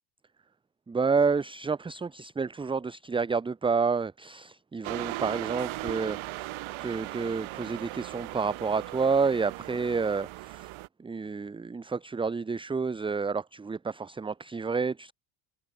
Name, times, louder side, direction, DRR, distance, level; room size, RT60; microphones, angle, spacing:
voice 1, 0.9-6.5 6.8-10.7 11.0-15.1, right 5 dB, 10° right, 0.7 m, -29 dB
sound 1, 4.8-10.9, right 20 dB, 70° right, 4.2 m, -38 dB
cardioid pair, 140°, 49 cm